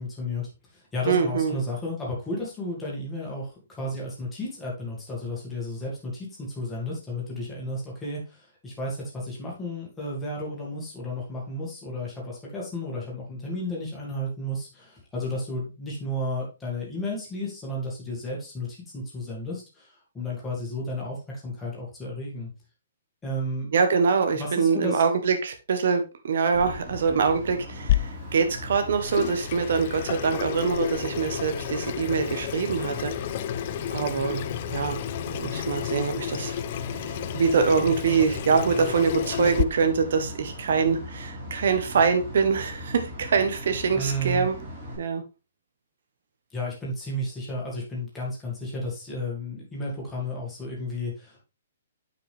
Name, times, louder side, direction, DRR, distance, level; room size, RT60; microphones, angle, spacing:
voice 1, 0.0-3.5 3.8-21.2 21.4-22.5 23.2-23.7 24.4-25.0 43.9-44.5 46.5-51.4, left 1 dB, 5° left, -5 dB, 2.1 m, -33 dB
voice 2, 1.1-1.6 23.7-33.1 33.9-34.5 34.7-35.0 35.3-36.6 37.3-44.6 45.0-45.2, right 5 dB, 55° right, 6 dB, 1.1 m, -24 dB
sound 1, 26.5-44.9, left 1 dB, 15° right, 4.1 m, -39 dB
Water tap faucet / Sink (filling or washing), 27.9-39.6, left 12 dB, 35° left, 0.3 m, -31 dB
8.5 x 5.2 x 3.4 m, 0.29 s
hypercardioid pair, 175°, 0 cm